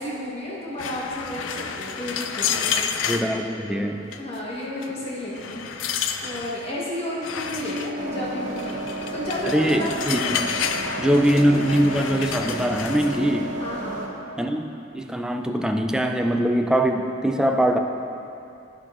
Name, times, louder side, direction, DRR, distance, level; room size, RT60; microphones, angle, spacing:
voice 1, 0.0-2.8 3.6-5.7 6.2-8.8 9.1-9.9 10.8-11.1 13.6-14.0, left 1 dB, 30° left, -6 dB, 1.2 m, -32 dB
sound 1, 0.8-3.3 4.1-4.4 4.8-4.9 5.3-6.6 7.2-7.9 8.6-13.2, left 7 dB, 85° left, 0.4 m, -30 dB
voice 2, 3.0-4.1 9.5-10.6 11.0-13.5 14.4-17.8, equal, 5° right, 4 dB, 0.3 m, -22 dB
sound 2, 7.6-10.9, equal, 75° right, 0.5 m, -37 dB
sound 3, 8.0-14.1, right 2 dB, 40° right, 1.0 m, -33 dB
14.5 x 5.2 x 2.5 m, 2.6 s
head